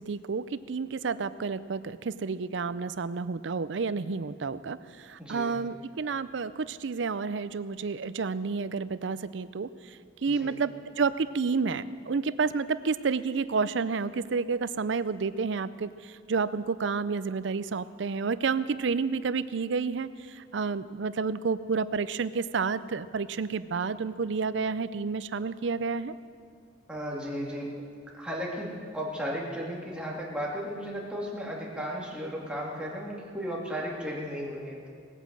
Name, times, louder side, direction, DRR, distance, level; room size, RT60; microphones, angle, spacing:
voice 1, 0.0-26.1, right 5 dB, 70° right, 15 dB, 0.5 m, -30 dB
voice 2, 5.2-5.5 10.3-10.5 26.9-27.7 28.2-34.9, equal, 5° right, -3 dB, 2.4 m, -35 dB
18.5 x 9.1 x 7.5 m, 2.2 s
head